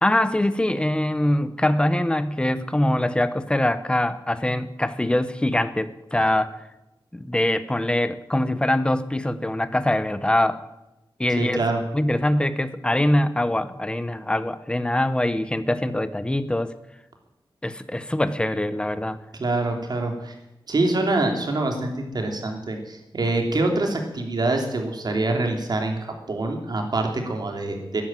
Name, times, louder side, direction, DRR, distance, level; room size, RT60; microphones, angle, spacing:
voice 1, 0.0-6.5 7.1-10.6 11.2-11.6 11.9-16.7 17.6-19.2, left 1 dB, 10° left, 13 dB, 0.9 m, -23 dB
voice 2, 11.4-11.8 19.4-20.3 20.7-28.0, right 2 dB, 55° right, 3 dB, 3.1 m, -25 dB
13.5 x 10.5 x 9.2 m, 0.93 s
wide cardioid pair, 125°, 8 cm